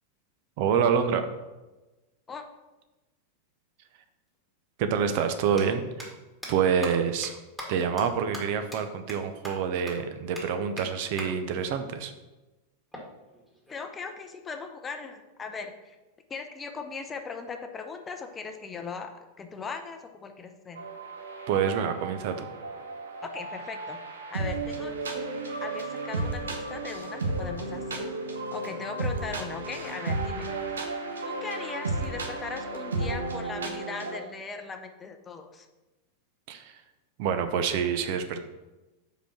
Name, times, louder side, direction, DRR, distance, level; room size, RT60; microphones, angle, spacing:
voice 1, 0.6-1.3 4.8-6.1 6.5-7.3 7.7-12.1 21.5-22.4 36.5-36.8 37.2-38.4, right 7 dB, 45° right, 8 dB, 0.7 m, -27 dB
sound 1, 4.3-4.4 5.4-5.6 6.0-6.1 6.4-6.5 6.8-6.9 7.2-7.3 7.6-7.7 8.0-8.1 8.3-8.4 8.7-8.8 9.1-9.2 9.4-9.5 9.9-10.0 10.4-10.5 10.8-10.9 11.2-11.3 12.9-13.9, equal, ahead, 2.0 m, -40 dB
voice 2, 13.7-16.0 16.3-20.8 23.2-24.0 24.3-28.1 28.5-30.8 31.2-35.7, left 5 dB, 20° left, 6 dB, 0.6 m, -39 dB
sound 2, 20.7-34.2, right 2 dB, 70° right, 0.9 m, -33 dB
5.1 x 5.0 x 5.8 m, 1.1 s
figure-of-eight pair, 90°, 0 cm